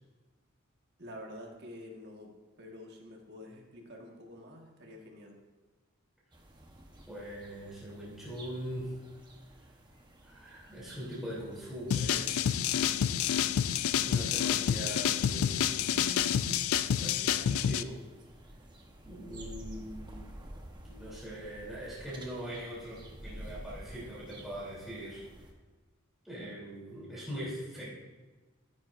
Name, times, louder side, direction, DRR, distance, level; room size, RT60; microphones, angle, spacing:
voice 1, 1.0-2.3 2.6-5.4, left 1 dB, 45° right, 1 dB, 1.6 m, -48 dB
sound 1, 6.3-25.5, right 1 dB, 20° right, 1.0 m, -51 dB
voice 2, 7.1-9.0 10.2-12.6 13.3-13.4 14.0-18.0 19.0-20.3 20.8-25.2 26.2-28.0, equal, ahead, -9 dB, 3.2 m, -42 dB
sound 2, 11.9-17.8, left 9 dB, 70° left, 0.4 m, -28 dB
14.0 x 9.9 x 2.6 m, 1.3 s
head